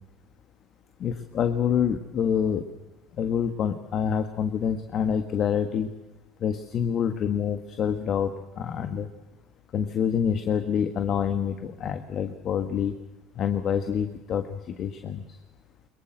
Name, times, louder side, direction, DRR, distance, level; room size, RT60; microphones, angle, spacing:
voice 1, 1.0-2.6 3.2-5.9 6.4-9.1 9.7-12.9 13.3-15.2, left 8 dB, 50° left, 9 dB, 1.6 m, -27 dB
22.5 x 21.5 x 7.8 m, 1.1 s
supercardioid pair, 90°, 0 cm